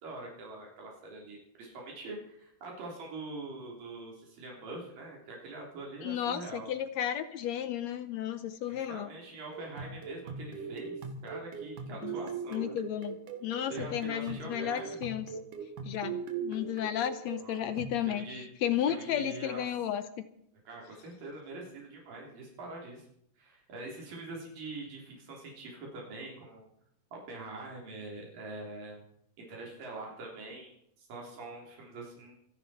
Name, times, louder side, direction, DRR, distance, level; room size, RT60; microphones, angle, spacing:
voice 1, 0.0-6.7 8.6-12.8 13.7-15.0 17.4-17.7 18.1-18.5 18.9-19.6 20.7-23.1 23.4-26.7 27.1-29.0 29.5-32.3, right 2 dB, 90° right, -2 dB, 5.2 m, -44 dB
voice 2, 6.0-9.1 12.0-12.1 12.5-15.3 15.8-20.3, left 10 dB, 70° left, 11 dB, 1.7 m, -33 dB
sound 1, 9.5-18.0, right 5 dB, 70° right, 3.0 m, -41 dB
26.5 x 11.0 x 4.3 m, 0.73 s
omnidirectional pair, 3.8 m